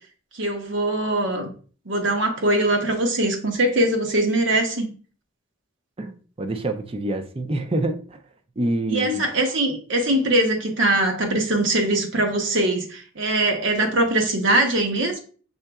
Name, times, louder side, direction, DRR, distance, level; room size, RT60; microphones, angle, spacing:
voice 1, 0.3-1.5 1.9-4.9 8.9-15.2, right 1 dB, 70° right, 1.0 m, -22 dB
voice 2, 6.0-8.2 8.6-9.2, right 1 dB, 25° right, 0.4 m, -26 dB
5.5 x 3.8 x 2.3 m
head